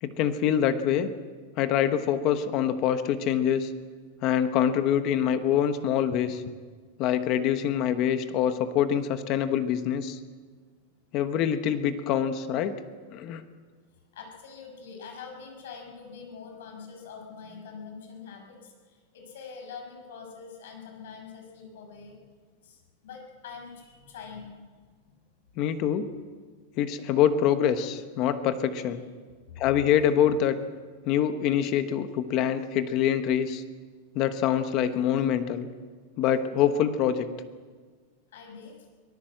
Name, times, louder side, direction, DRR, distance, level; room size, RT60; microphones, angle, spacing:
voice 1, 0.0-1.1 1.6-3.7 4.2-6.4 7.0-10.2 11.1-12.7 13.1-13.4 25.6-26.1 26.8-29.0 29.6-30.6 31.1-33.6 34.1-35.7 36.2-37.3, left 9 dB, 30° left, 10 dB, 1.1 m, -25 dB
voice 2, 13.9-22.1 22.6-24.6 25.1-25.2 29.5-29.7 38.3-38.8, left 5 dB, 70° left, 3 dB, 6.6 m, -44 dB
24.0 x 18.0 x 7.8 m, 1.5 s
supercardioid pair, 180°, 0 cm